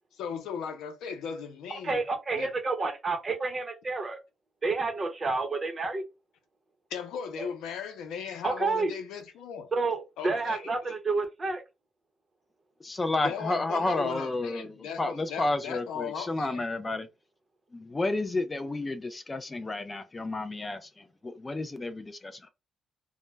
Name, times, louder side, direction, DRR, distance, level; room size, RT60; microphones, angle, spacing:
voice 1, 0.1-2.0 2.3-2.5 6.9-9.7 10.2-10.6 13.2-16.6, left 7 dB, 85° left, 0.5 m, -37 dB
voice 2, 1.7-4.2 4.6-6.0 7.4-7.5 8.4-8.9 9.7-11.6, right 3 dB, 30° right, 0.8 m, -29 dB
voice 3, 12.8-17.1 17.7-22.5, left 2 dB, 25° left, 0.4 m, -31 dB
2.1 x 2.1 x 3.2 m
cardioid pair, 90°, 0 cm